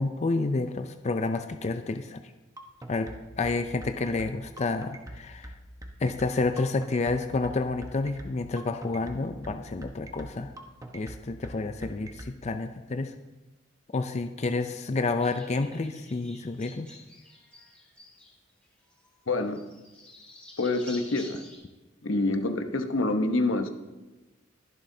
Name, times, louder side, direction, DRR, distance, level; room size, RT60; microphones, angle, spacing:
voice 1, 0.0-2.2 2.9-3.1 3.4-5.5 6.0-10.5 10.9-13.1 13.9-16.9, left 3 dB, 35° left, 8 dB, 0.4 m, -29 dB
sound 1, 2.6-12.3, right 1 dB, 15° right, 1.0 m, -43 dB
sound 2, 15.2-18.7 18.9-21.6, left 1 dB, 10° left, 3.5 m, -50 dB
voice 2, 19.3-19.6 20.6-21.4 22.0-23.7, left 2 dB, 85° left, 7 dB, 1.0 m, -26 dB
22.0 x 7.4 x 2.7 m, 1.1 s
head